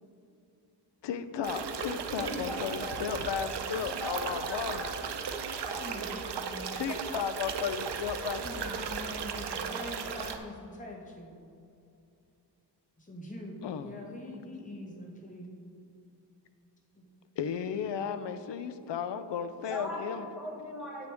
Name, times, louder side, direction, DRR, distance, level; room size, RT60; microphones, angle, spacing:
voice 1, 1.0-4.8 6.7-8.7 13.6-13.9 17.4-20.3, left 7 dB, 90° left, 11 dB, 0.6 m, -34 dB
sound 1, 1.4-10.4, right 6 dB, 75° right, 0.7 m, -36 dB
voice 2, 2.2-5.9 19.7-21.1, equal, ahead, -4 dB, 1.1 m, -41 dB
voice 3, 5.7-6.8 8.3-11.4 13.0-15.6 16.9-17.0 18.8-18.9, left 1 dB, 20° left, -1 dB, 1.2 m, -44 dB
9.6 x 8.1 x 3.5 m, 2.6 s
wide cardioid pair, 140°, 42 cm